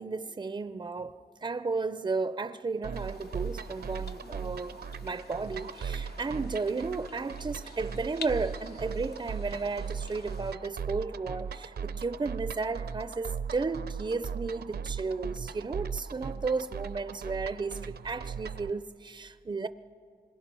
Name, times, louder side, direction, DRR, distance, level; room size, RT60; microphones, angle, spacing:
voice 1, 0.0-19.7, right 4 dB, 25° right, 0.4 m, -34 dB
sound 1, 2.8-18.7, right 6 dB, 75° right, 0.6 m, -38 dB
sound 2, 2.9-10.5, left 5 dB, 80° left, 1.0 m, -49 dB
26.5 x 21.5 x 6.1 m
wide cardioid pair, 105°, 17 cm